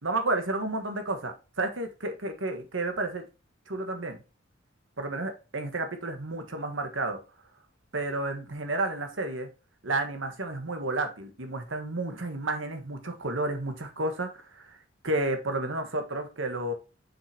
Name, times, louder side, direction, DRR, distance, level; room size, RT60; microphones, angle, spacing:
voice 1, 0.0-3.2 3.7-4.2 5.0-7.2 7.9-9.5 9.8-14.8 15.0-16.7, right 2 dB, 70° right, 1.4 m, -31 dB
6.8 x 5.5 x 2.8 m
head